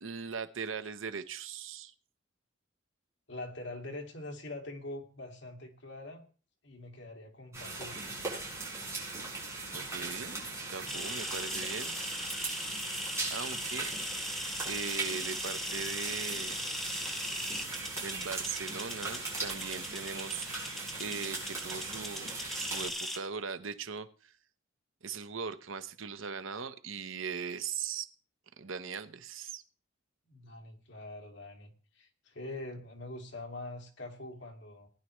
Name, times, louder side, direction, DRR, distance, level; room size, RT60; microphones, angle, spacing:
voice 1, 0.0-1.9 9.7-10.4 10.7-12.4 13.3-13.9 14.7-16.6 18.0-20.5 21.0-22.3 22.6-24.3 25.0-28.1 28.6-29.6, right 6 dB, 80° right, 10 dB, 0.9 m, -39 dB
voice 2, 3.3-6.2 6.6-8.0 30.3-34.9, left 2 dB, 60° left, 3 dB, 2.3 m, -44 dB
sound 1, 7.5-22.9, right 3 dB, 15° right, 6.4 m, -39 dB
sound 2, 10.9-23.2, equal, ahead, 1.5 m, -39 dB
19.0 x 11.0 x 3.2 m, 0.38 s
head